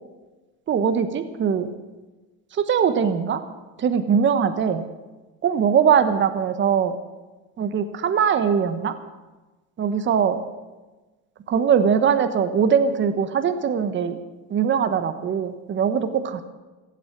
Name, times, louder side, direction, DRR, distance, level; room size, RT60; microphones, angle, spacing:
voice 1, 0.7-1.7 2.5-3.4 3.8-4.9 5.4-7.0 7.6-8.9 9.8-10.4 11.5-14.2 14.5-16.4, right 7 dB, 35° right, 10 dB, 1.3 m, -21 dB
16.0 x 8.3 x 8.6 m, 1.2 s
supercardioid pair, 110°, 32 cm